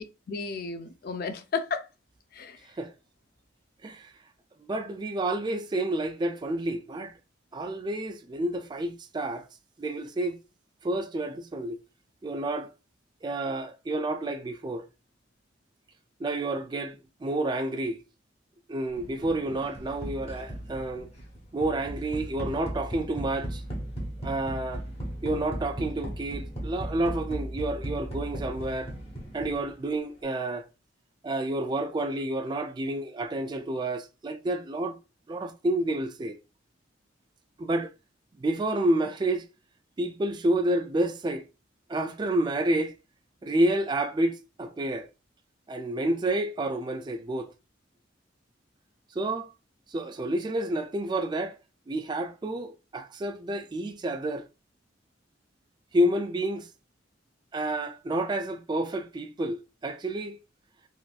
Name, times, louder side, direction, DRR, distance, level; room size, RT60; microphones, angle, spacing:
voice 1, 0.0-1.9 2.3-2.6, left 5 dB, 50° left, 0.4 m, -33 dB
voice 2, 3.8-4.1 4.6-7.1 7.5-9.5 9.8-10.4 10.8-11.8 12.2-12.7 13.2-14.9 16.2-18.0 18.7-21.1 21.5-23.6 24.2-24.8 25.2-28.9 29.3-30.7 31.2-35.0 35.3-36.4 37.6-37.9 38.4-39.4 40.0-41.4 41.9-42.9 43.4-45.1 45.7-47.5 49.2-49.5 49.9-51.6 51.9-54.4 55.9-56.7 57.5-60.4, right 1 dB, 25° right, 0.3 m, -29 dB
sound 1, 19.0-29.8, right 1 dB, 30° left, 1.0 m, -37 dB
3.8 x 2.5 x 2.3 m
head